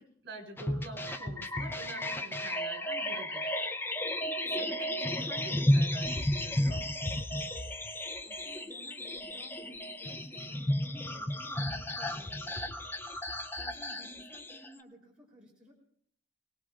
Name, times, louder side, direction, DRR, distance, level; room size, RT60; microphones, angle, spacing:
voice 1, 0.0-3.5 4.2-6.8, right 2 dB, 65° right, 3 dB, 4.5 m, -46 dB
sound 1, 0.6-14.7, left 1 dB, 10° left, 0.5 m, -33 dB
voice 2, 4.4-4.9 8.2-13.2 13.6-15.7, equal, 5° right, -5 dB, 3.5 m, -55 dB
24.5 x 18.0 x 2.5 m, 0.65 s
head